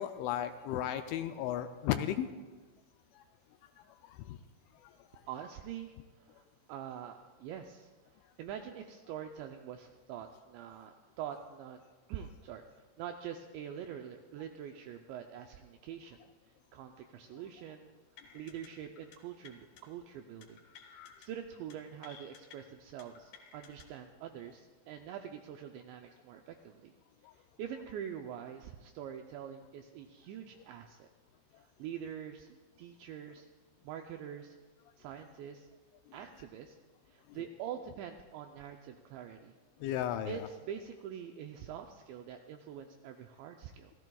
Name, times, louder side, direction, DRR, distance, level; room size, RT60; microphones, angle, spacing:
voice 1, 0.0-2.3 3.1-3.2 4.0-4.4 4.8-5.2 27.2-27.3 36.1-36.2 37.3-37.4 39.8-40.5, left 11 dB, 85° left, 8 dB, 2.8 m, -35 dB
voice 2, 5.3-7.9 8.4-11.8 12.1-16.2 16.7-17.9 18.3-20.6 20.9-26.9 27.3-31.1 31.6-33.5 33.8-34.6 35.0-35.7 36.1-36.8 37.1-39.5 40.2-43.9, right 9 dB, 85° right, 4 dB, 2.5 m, -45 dB
sound 1, 18.2-18.7 19.0-19.2 19.4-19.8 20.4-21.3 21.5-21.7 22.0-22.6 23.0-23.8, left 7 dB, 65° left, 3.0 m, -54 dB
27.5 x 15.5 x 2.3 m, 1.4 s
omnidirectional pair, 5.8 m